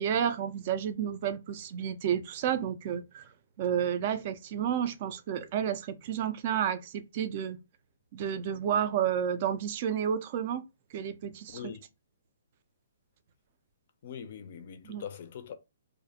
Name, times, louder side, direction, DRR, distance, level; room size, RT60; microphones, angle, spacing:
voice 1, 0.0-3.3 3.6-7.6 8.1-10.6 10.9-11.6 14.8-15.0, right 9 dB, 40° right, 0.3 m, -31 dB
voice 2, 14.0-15.6, left 7 dB, 50° left, 0.4 m, -42 dB
2.4 x 2.0 x 2.7 m
hypercardioid pair, 155°, 0 cm